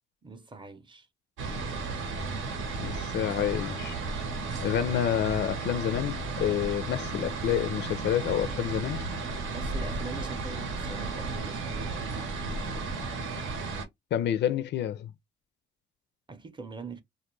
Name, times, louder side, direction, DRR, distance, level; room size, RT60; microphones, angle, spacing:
voice 1, 0.2-1.1 9.5-13.1 16.3-17.0, right 4 dB, 25° right, 0.6 m, -43 dB
sound 1, 1.4-13.9, right 3 dB, 80° right, 0.8 m, -34 dB
voice 2, 2.8-4.0 4.6-9.0 14.1-15.1, left 10 dB, 65° left, 0.4 m, -28 dB
2.3 x 2.1 x 3.0 m
cardioid pair, 90°, 20 cm